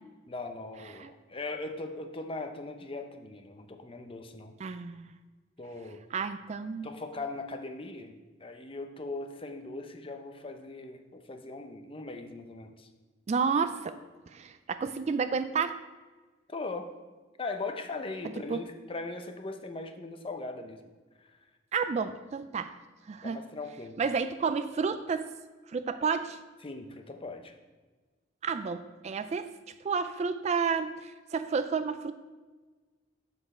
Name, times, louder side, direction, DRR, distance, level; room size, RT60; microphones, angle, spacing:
voice 1, 0.3-4.5 5.6-6.0 6.8-12.9 16.5-16.9 17.4-20.9 21.2-21.3 23.2-24.0 26.6-27.5, left 3 dB, 30° left, 6 dB, 0.6 m, -39 dB
voice 2, 4.6-5.1 6.1-6.9 13.3-14.0 14.3-15.8 18.5-18.6 21.7-22.7 23.1-23.4 24.0-25.3 25.7-26.4 28.4-29.5 29.8-32.1, right 5 dB, 35° right, 11 dB, 0.3 m, -31 dB
7.2 x 6.6 x 4.3 m, 1.3 s
head